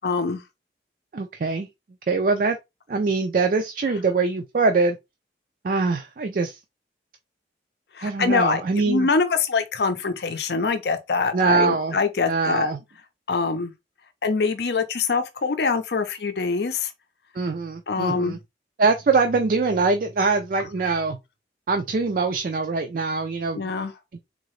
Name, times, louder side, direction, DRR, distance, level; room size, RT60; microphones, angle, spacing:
voice 1, 0.0-0.4 7.9-12.7 13.3-13.7 14.2-16.9 17.9-18.4 23.5-23.9, left 4 dB, 65° left, 0.6 m, -24 dB
voice 2, 1.1-1.7 2.1-2.6 2.9-5.0 5.6-6.6 8.0-9.1 11.3-12.0 12.3-12.8 17.3-18.4 18.8-21.2 21.7-23.7, right 4 dB, 50° right, 0.4 m, -23 dB
3.8 x 2.8 x 3.1 m
head